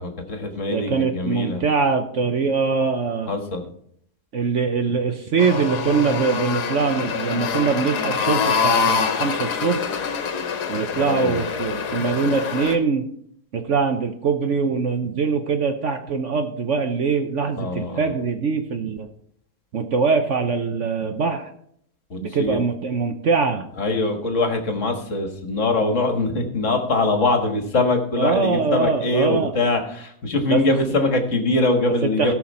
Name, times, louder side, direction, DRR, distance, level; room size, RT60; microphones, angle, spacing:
voice 1, 0.0-1.6 3.3-3.6 11.0-11.4 17.6-18.1 22.1-22.6 23.8-32.3, left 2 dB, 50° left, 4 dB, 1.8 m, -23 dB
voice 2, 0.7-3.3 4.3-9.8 10.7-13.1 13.5-19.1 19.7-21.5 22.2-23.6 28.2-29.5 30.5-30.6 32.0-32.3, right 5 dB, 55° right, 6 dB, 1.0 m, -22 dB
sound 1, 5.4-12.8, left 6 dB, 80° left, 1.6 m, -25 dB
17.5 x 6.0 x 4.2 m, 0.68 s
omnidirectional pair, 1.7 m